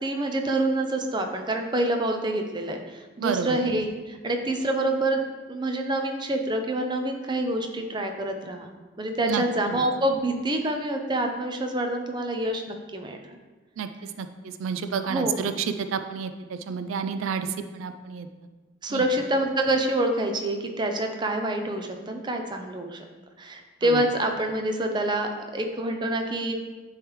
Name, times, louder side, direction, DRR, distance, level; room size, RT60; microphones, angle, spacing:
voice 1, 0.0-5.2 5.5-8.7 9.0-13.4 15.0-15.5 18.8-23.0 23.4-26.5, right 1 dB, 25° right, 4 dB, 0.5 m, -27 dB
voice 2, 3.2-3.6 9.3-9.8 13.8-17.5 17.7-18.3 18.9-19.0 23.8-24.0, right 6 dB, 85° right, 10 dB, 0.4 m, -30 dB
9.5 x 3.2 x 3.1 m, 1.3 s
head